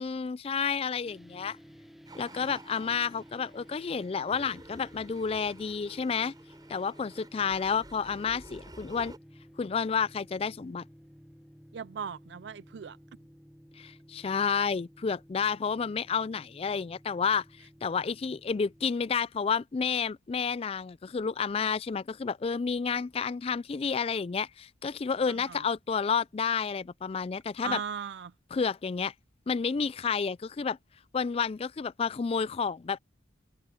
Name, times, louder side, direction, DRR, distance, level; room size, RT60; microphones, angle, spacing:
voice 1, 0.0-1.6 2.2-6.3 6.7-9.1 9.6-10.8 13.8-27.8 28.5-29.1 29.5-30.8 31.1-33.0, left 6 dB, 30° left, 0.3 m, -30 dB
sound 1, 1.0-18.9, equal, ahead, 1.1 m, -54 dB
sound 2, 2.1-9.2, right 2 dB, 20° right, 7.1 m, -51 dB
voice 2, 11.7-13.0 25.3-25.6 27.6-28.3, right 7 dB, 60° right, 0.4 m, -38 dB
head